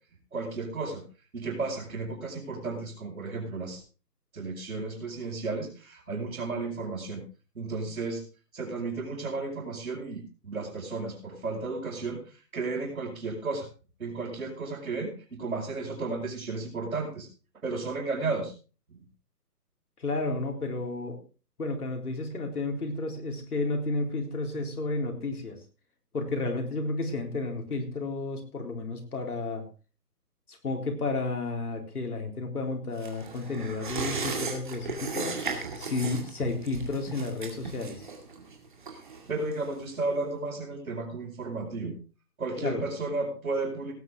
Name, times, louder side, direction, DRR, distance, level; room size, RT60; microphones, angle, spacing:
voice 1, 0.3-1.0 1.3-3.8 4.3-7.2 7.6-8.2 8.5-12.2 12.5-13.7 14.0-17.3 17.6-18.5 18.9-19.0 38.9-39.0 39.3-41.9 42.4-43.9, right 3 dB, 55° right, -6 dB, 5.2 m, -33 dB
voice 2, 20.0-21.2 21.6-25.6 26.1-29.7 30.5-35.4 35.8-38.1 42.6-42.9, left 3 dB, 65° left, 3 dB, 4.0 m, -32 dB
sound 1, 33.0-40.0 40.4-40.5, right 4 dB, 30° right, 2.2 m, -36 dB
18.0 x 9.5 x 3.6 m, 0.34 s
hypercardioid pair, 180°, 49 cm